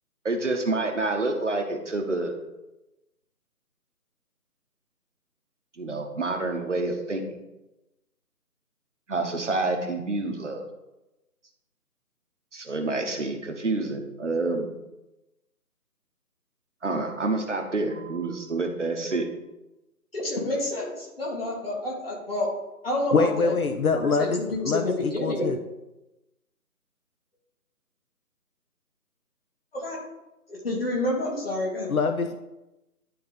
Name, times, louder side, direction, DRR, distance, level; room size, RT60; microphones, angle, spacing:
voice 1, 0.2-2.3 5.8-7.2 9.1-10.6 12.5-14.7 16.8-19.3, right 2 dB, 50° right, 3 dB, 1.0 m, -28 dB
voice 2, 20.1-22.5 22.8-23.5 23.9-25.5 29.7-30.0 30.5-31.9, left 1 dB, 40° left, -4 dB, 2.2 m, -29 dB
voice 3, 23.1-25.6 31.9-32.4, left 4 dB, 65° left, 7 dB, 0.6 m, -24 dB
11.0 x 3.8 x 3.7 m, 0.97 s
figure-of-eight pair, 170°, 47 cm